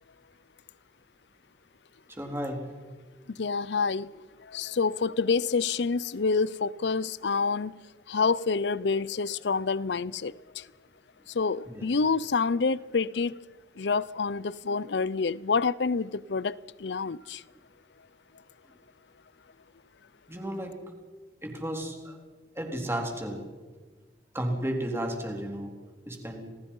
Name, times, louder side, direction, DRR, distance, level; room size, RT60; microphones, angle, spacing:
voice 1, 2.1-2.6 11.7-11.9 20.3-20.8 21.4-22.2 22.6-23.4 24.3-25.7 26.1-26.5, right 1 dB, 15° right, 3.6 m, -33 dB
voice 2, 3.4-4.1 4.5-7.8 8.1-10.6 11.3-13.4 13.8-17.4, left 4 dB, 75° left, 0.6 m, -27 dB
28.0 x 19.0 x 5.5 m
head